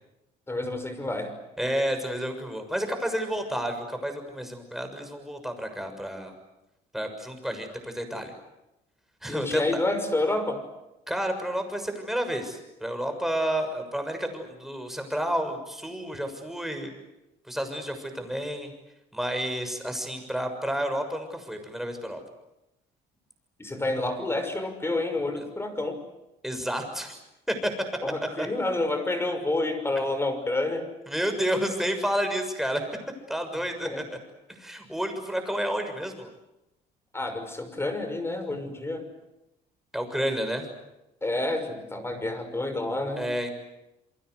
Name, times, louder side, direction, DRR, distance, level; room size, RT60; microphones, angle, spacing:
voice 1, 0.5-1.4 9.3-10.7 23.6-26.0 28.0-30.9 33.8-34.0 37.1-39.1 41.2-43.3, left 2 dB, 15° left, 8 dB, 6.0 m, -29 dB
voice 2, 1.6-6.3 6.9-8.3 9.2-9.6 11.1-16.9 17.5-18.7 19.1-22.2 26.4-27.2 27.5-27.7 28.4-28.5 31.1-32.8 33.3-34.2 34.5-36.3 39.9-40.6 43.2-43.6, equal, ahead, 6 dB, 6.6 m, -30 dB
28.0 x 24.0 x 8.2 m, 0.94 s
cardioid pair, 110°, 17 cm